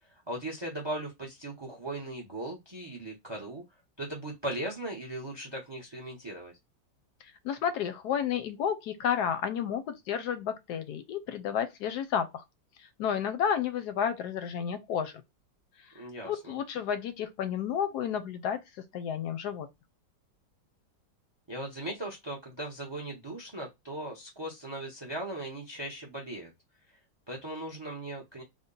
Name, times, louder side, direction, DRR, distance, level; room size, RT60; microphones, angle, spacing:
voice 1, 0.1-3.6 4.0-6.5 15.9-16.6 21.5-26.5 27.3-28.4, right 1 dB, 45° right, 0.3 m, -38 dB
voice 2, 7.4-12.4 13.0-15.1 16.2-18.6 18.9-19.7, left 8 dB, 70° left, 1.0 m, -31 dB
3.6 x 2.1 x 3.8 m
omnidirectional pair, 2.0 m